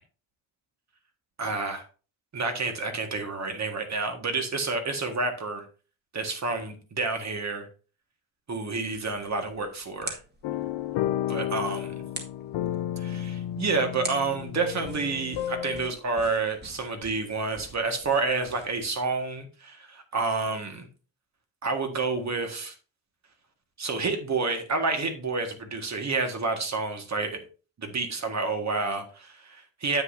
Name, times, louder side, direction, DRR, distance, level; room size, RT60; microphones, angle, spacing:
voice 1, 1.4-1.8 2.3-5.7 6.1-7.7 8.5-10.2 11.3-12.0 13.0-20.9 21.6-22.7 23.8-27.4 27.8-30.0, right 3 dB, 40° right, 5 dB, 1.8 m, -29 dB
sound 1, 8.9-18.9, right 2 dB, 25° right, 1.8 m, -45 dB
sound 2, 10.4-15.9, left 12 dB, 90° left, 0.6 m, -32 dB
9.7 x 7.9 x 2.7 m, 0.36 s
cardioid pair, 130°, 43 cm